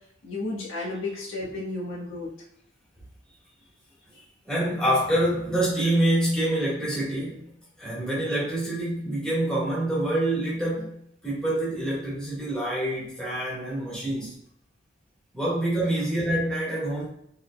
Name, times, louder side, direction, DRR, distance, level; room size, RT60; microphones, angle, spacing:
voice 1, 0.2-2.3 4.1-4.3, left 2 dB, 85° left, -4 dB, 1.3 m, -33 dB
voice 2, 4.5-7.5 7.8-10.9 11.2-14.4 15.3-17.1, right 1 dB, 5° left, -8 dB, 1.5 m, -26 dB
4.4 x 3.4 x 2.2 m, 0.73 s
head